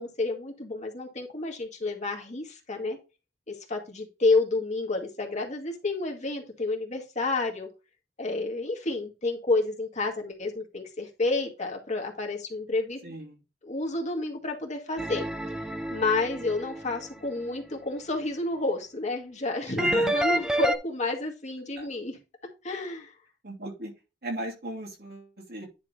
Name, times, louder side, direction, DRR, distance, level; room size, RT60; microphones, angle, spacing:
voice 1, 0.0-3.0 3.5-7.7 8.2-13.0 13.6-15.2 15.9-19.9 20.1-22.1 22.6-23.1, left 3 dB, 40° left, 1 dB, 2.0 m, -30 dB
voice 2, 13.0-13.4 19.7-20.2 21.8-21.9 23.4-23.9 24.2-25.7, right 1 dB, 65° right, -1 dB, 2.8 m, -37 dB
sound 1, 15.0-17.1 19.8-20.7, right 1 dB, 5° right, 0.7 m, -28 dB
10.0 x 3.7 x 4.4 m, 0.29 s
head